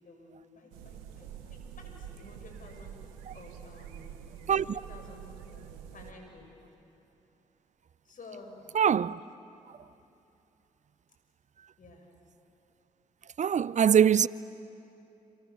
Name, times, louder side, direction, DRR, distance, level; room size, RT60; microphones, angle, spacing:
voice 1, 0.0-4.1 4.4-6.5 8.0-8.6 11.8-12.1, left 2 dB, 55° left, 6.5 m, -51 dB
sound 1, 0.7-6.1, right 9 dB, 90° right, 1.2 m, -46 dB
voice 2, 8.8-9.2 13.4-14.3, right 8 dB, 50° right, 0.5 m, -22 dB
28.5 x 27.0 x 7.2 m
hypercardioid pair, 40°, 16 cm